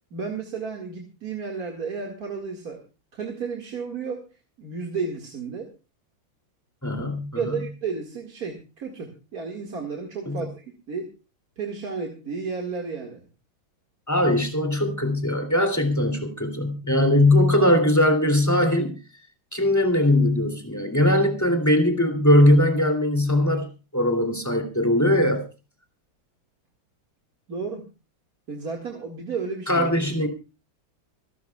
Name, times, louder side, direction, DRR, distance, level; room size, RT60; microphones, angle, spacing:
voice 1, 0.1-2.8 3.1-4.2 4.6-5.7 7.4-11.1 11.6-13.2 27.5-27.8 28.5-29.9, right 5 dB, 50° right, 1 dB, 2.5 m, -32 dB
voice 2, 6.8-7.6 10.3-10.5 14.1-18.9 19.5-23.7 23.9-25.4 29.7-30.3, left 1 dB, 10° left, 4 dB, 2.8 m, -20 dB
26.0 x 12.0 x 2.4 m, 0.31 s
omnidirectional pair, 2.2 m